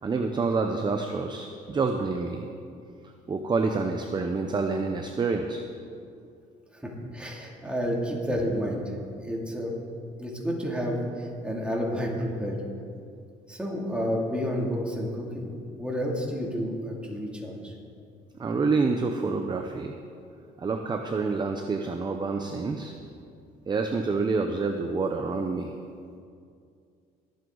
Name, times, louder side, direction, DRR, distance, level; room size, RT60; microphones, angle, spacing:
voice 1, 0.0-2.4 3.3-5.6 18.4-19.9 20.6-22.9 23.7-25.7, right 4 dB, 25° right, 5 dB, 0.7 m, -27 dB
voice 2, 6.7-8.8 9.1-9.8 10.2-12.6 13.5-15.5 15.8-17.7, equal, 5° right, -3 dB, 2.6 m, -30 dB
21.5 x 7.8 x 3.9 m, 2.3 s
cardioid pair, 110°, 17 cm